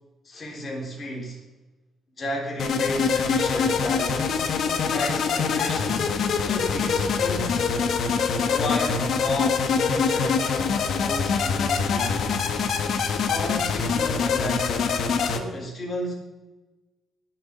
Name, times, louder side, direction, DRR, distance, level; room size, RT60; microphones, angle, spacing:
voice 1, 0.2-1.4 2.2-4.3 4.8-6.1 6.4-7.7 8.4-10.5 11.0-12.3 13.3-16.1, left 1 dB, 30° left, -1 dB, 3.8 m, -33 dB
sound 1, 2.6-15.4, left 5 dB, 55° left, 1.3 m, -24 dB
19.5 x 7.0 x 5.3 m, 1.2 s
cardioid pair, 150°, 0 cm